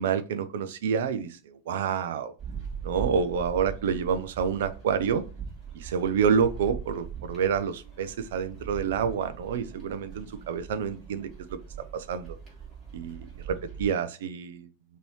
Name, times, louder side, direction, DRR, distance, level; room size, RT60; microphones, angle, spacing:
voice 1, 0.0-2.3 2.8-5.2 5.7-11.6 11.9-12.4 12.9-14.7, right 7 dB, 55° right, 12 dB, 0.5 m, -28 dB
sound 1, 2.4-13.9, right 7 dB, 25° right, 2.6 m, -41 dB
5.3 x 2.8 x 3.0 m, 0.34 s
figure-of-eight pair, 90°, 0 cm